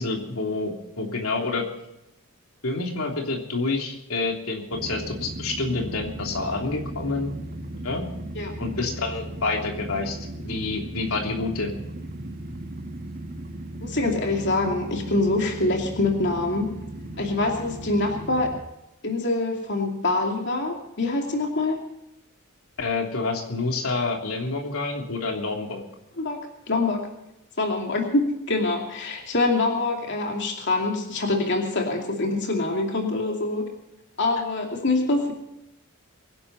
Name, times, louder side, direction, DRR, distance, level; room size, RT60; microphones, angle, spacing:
voice 1, 0.0-1.6 2.6-7.3 7.8-8.1 8.6-11.7 22.8-25.8, left 3 dB, 85° left, 1 dB, 3.2 m, -28 dB
sound 1, 4.7-18.6, right 1 dB, 45° right, 2.1 m, -36 dB
voice 2, 13.8-16.7 17.2-18.5 19.0-21.8 26.2-27.1 27.6-33.7 34.2-35.3, left 2 dB, 55° left, 2 dB, 2.6 m, -25 dB
24.0 x 11.0 x 4.2 m, 0.90 s
head